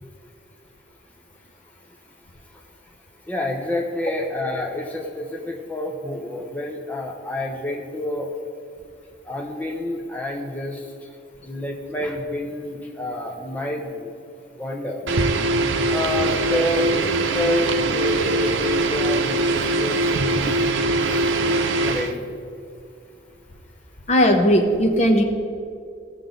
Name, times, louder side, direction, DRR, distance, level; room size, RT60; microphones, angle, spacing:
voice 1, 3.3-8.3 9.3-10.8 11.4-14.1 14.6-15.1 15.9-20.5 21.0-22.3, left 1 dB, 10° left, -1 dB, 0.8 m, -28 dB
sound 1, 15.1-22.1, right 2 dB, 90° right, 0.7 m, -22 dB
voice 2, 24.1-25.2, equal, 35° left, 4 dB, 1.0 m, -17 dB
17.0 x 6.6 x 3.9 m, 2.4 s
head